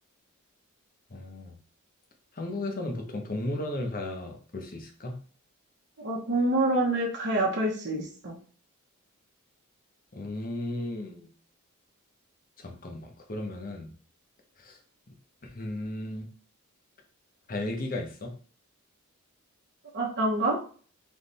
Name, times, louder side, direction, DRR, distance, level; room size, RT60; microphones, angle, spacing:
voice 1, 1.1-1.5 2.3-5.2 10.1-11.3 12.6-13.9 14.6-14.8 15.4-16.3 17.5-18.3, left 1 dB, 40° left, 3 dB, 0.9 m, -35 dB
voice 2, 6.0-8.3 19.9-20.6, right 2 dB, 50° right, -2 dB, 1.0 m, -26 dB
3.5 x 3.2 x 4.1 m, 0.42 s
head